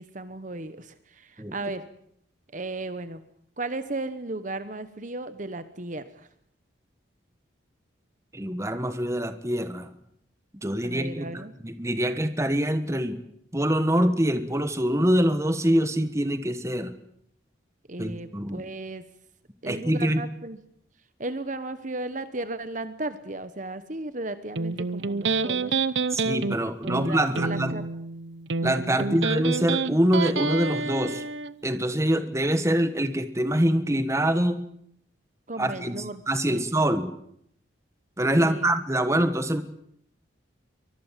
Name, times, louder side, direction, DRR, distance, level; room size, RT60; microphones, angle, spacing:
voice 1, 0.0-1.8 2.5-3.2 3.6-6.3 10.8-11.5 17.9-19.0 19.6-20.6 21.2-25.7 26.5-27.8 29.0-29.2 35.5-36.2 36.5-36.6 38.4-38.7, right 2 dB, 40° right, 12 dB, 1.1 m, -35 dB
voice 2, 8.3-9.9 10.6-13.2 13.5-16.9 18.0-18.6 19.6-20.2 26.1-27.7 28.6-31.2 31.6-34.6 35.6-36.0 36.3-37.1 38.2-39.6, right 1 dB, 15° right, 10 dB, 1.4 m, -25 dB
Electric guitar, 24.6-31.5, right 4 dB, 65° right, 0.8 m, -28 dB
24.0 x 20.5 x 7.4 m, 0.70 s
head